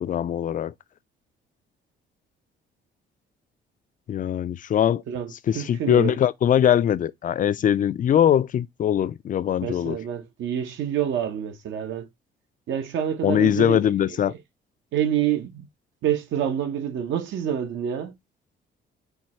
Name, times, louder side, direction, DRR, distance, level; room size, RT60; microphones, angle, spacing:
voice 1, 0.0-0.7 4.1-5.0 5.5-10.0 13.2-14.3, left 9 dB, 40° left, 0.4 m, -21 dB
voice 2, 5.1-6.2 9.6-12.1 12.7-14.4 14.9-15.7 16.0-18.2, right 10 dB, 75° right, 0.8 m, -27 dB
4.5 x 2.3 x 4.2 m
cardioid pair, 90°, 20 cm